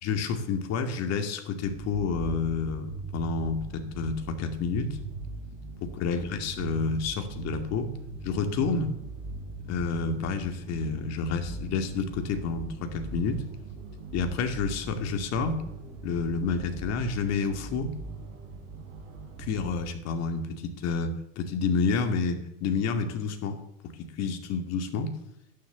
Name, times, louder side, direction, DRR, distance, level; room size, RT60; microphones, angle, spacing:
voice 1, 0.0-5.0 6.0-7.9 8.2-8.9 9.7-13.4 14.1-15.6 16.0-17.9 19.4-23.6 24.0-25.1, left 5 dB, 40° left, 6 dB, 2.4 m, -29 dB
sound 1, 1.6-19.8, right 3 dB, 40° right, 5.0 m, -40 dB
11.5 x 10.0 x 6.9 m, 0.82 s
supercardioid pair, 120°, 39 cm